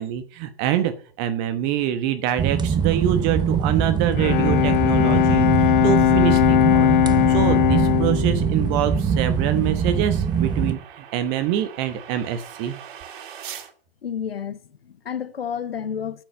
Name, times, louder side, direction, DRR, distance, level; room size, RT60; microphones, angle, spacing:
voice 1, 0.0-6.9 7.3-12.7, right 11 dB, 40° right, 1.1 m, -25 dB
sound 1, 2.4-10.7, right 7 dB, 15° right, 0.7 m, -23 dB
Bowed string instrument, 3.9-9.7, left 13 dB, 60° left, 0.6 m, -20 dB
sound 2, 6.0-13.7, right 9 dB, 55° right, 1.9 m, -45 dB
voice 2, 14.0-16.2, left 8 dB, 80° left, 1.0 m, -31 dB
8.4 x 7.9 x 6.5 m
figure-of-eight pair, 110°, 29 cm